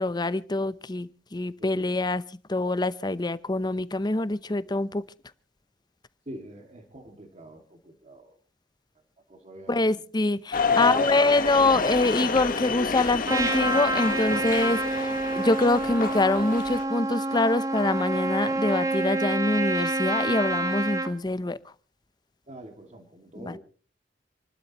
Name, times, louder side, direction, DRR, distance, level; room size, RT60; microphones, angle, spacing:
voice 1, 0.0-2.2 2.5-5.0 9.7-21.6 23.3-23.6, left 2 dB, 25° left, 15 dB, 0.7 m, -25 dB
voice 2, 6.3-8.3 9.3-10.0 10.6-11.2 16.0-16.5 22.5-23.6, right 1 dB, 40° right, 3 dB, 2.2 m, -44 dB
sound 1, 10.5-16.8, left 4 dB, 50° left, 1.2 m, -29 dB
Trumpet, 13.3-21.1, right 2 dB, 20° right, 1.4 m, -28 dB
28.0 x 12.0 x 3.0 m, 0.38 s
head